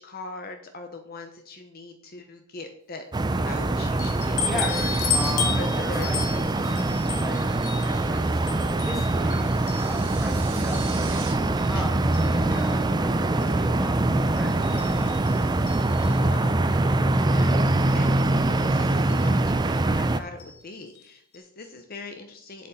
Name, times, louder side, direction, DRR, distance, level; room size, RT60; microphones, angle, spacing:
voice 1, 0.0-3.0 3.3-5.2 5.5-6.1 8.2-8.3 11.5-11.9 15.9-16.5 17.1-22.7, left 3 dB, 40° left, 5 dB, 0.7 m, -41 dB
sound 1, 3.1-20.2, right 2 dB, 20° right, 0.4 m, -23 dB
sound 2, 4.0-10.3 10.7-11.8 12.1-12.7 13.4-13.5 13.8-13.9 14.4-16.3 17.4-17.5 17.8-18.0 19.1-19.3 20.4-20.6 20.9-21.0 21.3-21.4, left 6 dB, 75° left, 1.5 m, -34 dB
voice 2, 4.4-4.8 5.1-15.4, equal, ahead, 0 dB, 1.7 m, -37 dB
sound 3, 9.2-11.3, right 6 dB, 80° right, 2.9 m, -41 dB
7.9 x 7.7 x 4.2 m, 0.67 s
head